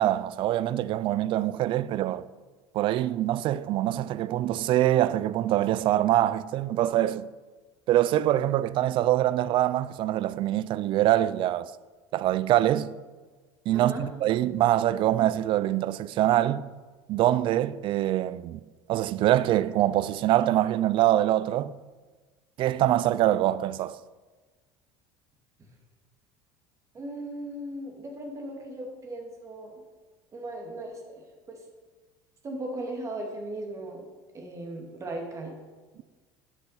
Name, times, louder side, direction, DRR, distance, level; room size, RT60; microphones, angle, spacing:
voice 1, 0.0-2.3 2.7-7.3 7.9-11.7 12.1-12.9 13.7-16.7 17.1-18.6 18.9-21.7 22.6-24.0, right 13 dB, 45° right, 0.4 m, -24 dB
voice 2, 13.7-14.0 26.9-29.8 30.3-31.6 32.4-34.0 34.3-35.6, right 1 dB, 25° right, 2.1 m, -37 dB
10.5 x 6.3 x 5.6 m
supercardioid pair, 125°, 11 cm